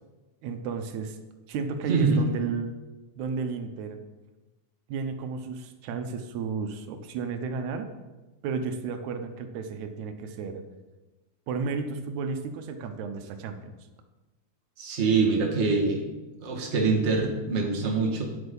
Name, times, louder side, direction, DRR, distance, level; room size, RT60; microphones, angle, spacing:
voice 1, 0.4-1.2 1.5-2.8 3.2-4.0 4.9-7.9 8.4-10.6 11.5-13.7, right 5 dB, 85° right, 8 dB, 2.2 m, -33 dB
voice 2, 1.9-2.2 14.8-16.0 16.4-18.2, right 4 dB, 30° right, -1 dB, 1.4 m, -24 dB
9.1 x 8.0 x 5.3 m, 1.1 s
omnidirectional pair, 3.3 m